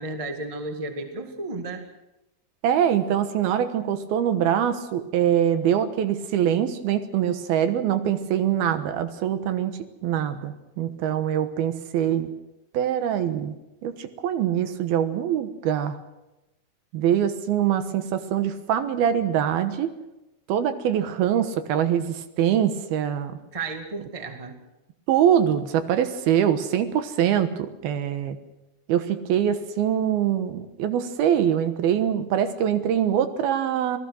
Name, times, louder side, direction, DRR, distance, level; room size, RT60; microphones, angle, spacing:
voice 1, 0.0-1.8 23.5-24.6, right 3 dB, 30° right, 5 dB, 0.6 m, -33 dB
voice 2, 2.6-9.7 10.0-12.3 12.7-13.6 13.8-16.0 16.9-19.9 20.5-23.4 25.1-28.4 28.9-34.0, right 9 dB, 75° right, 10 dB, 3.0 m, -23 dB
26.5 x 18.0 x 6.4 m, 0.97 s
omnidirectional pair, 4.7 m